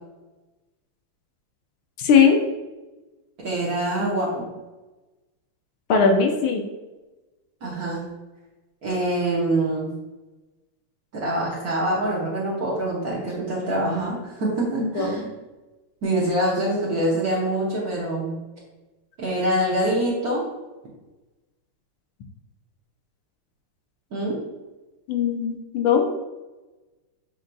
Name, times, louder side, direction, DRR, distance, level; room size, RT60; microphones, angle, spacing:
voice 1, 2.0-2.4 5.9-6.6 14.8-15.2 25.1-26.0, left 6 dB, 80° left, 3 dB, 1.4 m, -19 dB
voice 2, 3.4-4.4 7.6-8.0 8.8-9.9 11.1-15.3 16.0-18.4 19.2-20.5 24.1-24.4, right 1 dB, 55° right, -6 dB, 1.1 m, -25 dB
7.5 x 2.7 x 2.2 m, 1.1 s
omnidirectional pair, 2.4 m